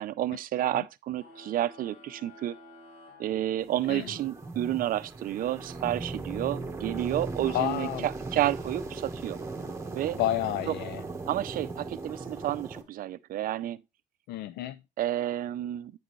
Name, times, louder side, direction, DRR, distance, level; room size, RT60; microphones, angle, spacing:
voice 1, 0.0-2.5 3.2-9.4 9.9-10.2 11.3-13.8 15.0-15.9, right 13 dB, 55° right, 0.5 m, -30 dB
sound 1, 1.1-4.1, left 2 dB, 55° left, 2.6 m, -52 dB
sound 2, 3.6-12.8, right 3 dB, 15° right, 1.3 m, -38 dB
voice 2, 7.5-8.1 10.2-11.0 14.3-14.8, left 13 dB, 75° left, 0.4 m, -30 dB
9.0 x 5.1 x 3.1 m
cardioid pair, 110°, 17 cm